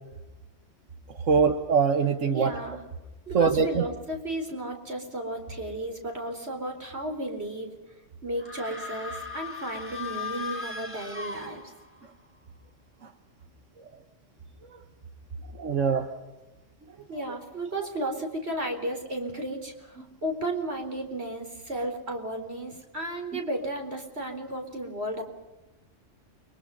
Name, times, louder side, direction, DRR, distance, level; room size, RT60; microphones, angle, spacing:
voice 1, 1.3-2.5 3.3-3.7 15.6-16.1, right 5 dB, 85° right, 6 dB, 1.7 m, -22 dB
voice 2, 2.3-2.8 3.3-7.7 8.2-11.6 17.1-25.2, right 1 dB, 55° right, 4 dB, 4.5 m, -34 dB
sound 1, 8.4-12.1, left 4 dB, 10° right, 3.7 m, -37 dB
30.0 x 23.5 x 5.6 m, 1.1 s
omnidirectional pair, 1.3 m